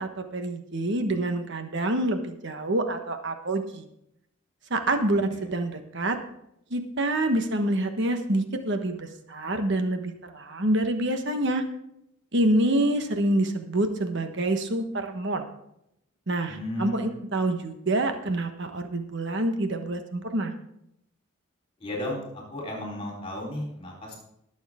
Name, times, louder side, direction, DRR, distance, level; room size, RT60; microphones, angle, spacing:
voice 1, 0.0-3.8 4.7-6.2 6.7-11.6 12.3-15.4 16.3-20.5, right 1 dB, 55° right, 6 dB, 1.2 m, -27 dB
voice 2, 16.5-17.2 21.8-24.2, left 1 dB, 25° left, -2 dB, 3.8 m, -34 dB
20.5 x 7.2 x 3.6 m, 0.78 s
head